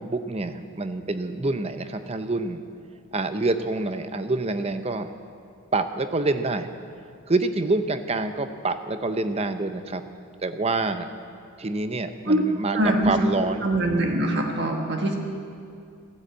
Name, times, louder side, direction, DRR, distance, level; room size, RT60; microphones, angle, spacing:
voice 1, 0.0-2.6 3.1-5.2 5.7-6.7 7.3-10.1 10.4-11.2 11.6-13.7, right 2 dB, 25° right, 9 dB, 0.6 m, -27 dB
voice 2, 12.7-13.1 13.6-15.2, right 1 dB, 50° right, 2 dB, 1.4 m, -23 dB
13.0 x 13.0 x 8.0 m, 2.4 s
head